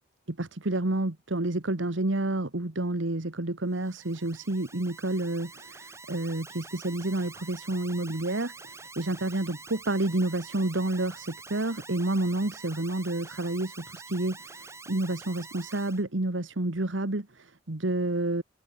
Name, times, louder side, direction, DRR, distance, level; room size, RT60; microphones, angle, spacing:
voice 1, 0.3-18.4, right 2 dB, 70° right, 1.6 m, -29 dB
Alarm, 3.7-16.0, right 3 dB, 15° right, 5.1 m, -47 dB
head